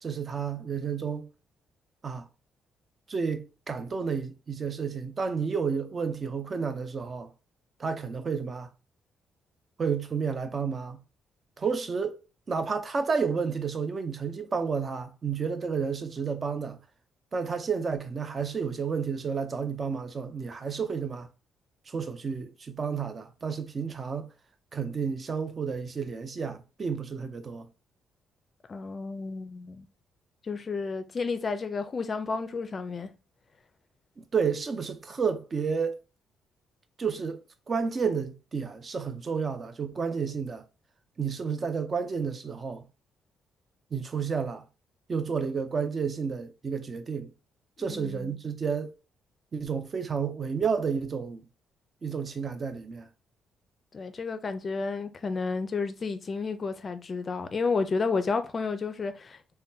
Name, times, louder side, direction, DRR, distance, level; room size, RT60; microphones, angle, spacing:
voice 1, 0.0-1.3 2.0-2.3 3.1-7.3 7.8-8.7 9.8-11.0 11.6-12.2 12.5-16.8 17.3-21.3 21.9-24.3 24.7-27.7 34.2-36.0 37.0-40.6 41.2-42.9 43.9-44.6 45.1-47.3 47.8-48.9 49.5-51.5 52.0-53.1, right 5 dB, 40° right, 0.5 m, -31 dB
voice 2, 28.7-29.9 30.4-33.1 47.8-48.4 53.9-59.4, left 4 dB, 40° left, 0.4 m, -31 dB
3.5 x 2.2 x 2.6 m
cardioid pair, 90°, 0 cm